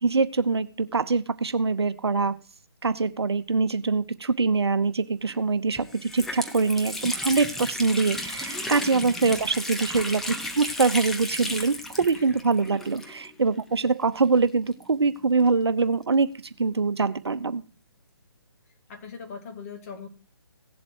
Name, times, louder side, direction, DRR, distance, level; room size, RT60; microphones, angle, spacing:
voice 1, 0.0-2.3 2.8-16.3 16.6-17.6, right 4 dB, 75° right, 12 dB, 0.9 m, -24 dB
Water tap faucet, 5.3-5.4 5.8-13.5 13.7-13.8 14.7-16.2, left 1 dB, ahead, 0.4 m, -34 dB
voice 2, 18.9-20.1, left 5 dB, 35° left, 3 dB, 2.1 m, -40 dB
17.5 x 7.5 x 2.9 m, 0.36 s
figure-of-eight pair, 150°, 14 cm